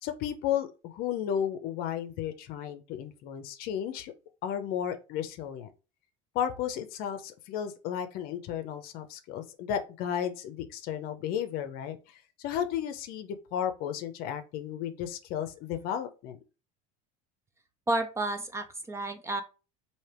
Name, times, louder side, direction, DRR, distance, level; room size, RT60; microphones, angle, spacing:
voice 1, 0.0-4.1 4.4-5.7 6.3-16.4, left 9 dB, 55° left, 0.6 m, -33 dB
voice 2, 17.9-19.4, right 2 dB, 15° right, 0.4 m, -31 dB
3.3 x 2.8 x 4.3 m
supercardioid pair, 135°, 19 cm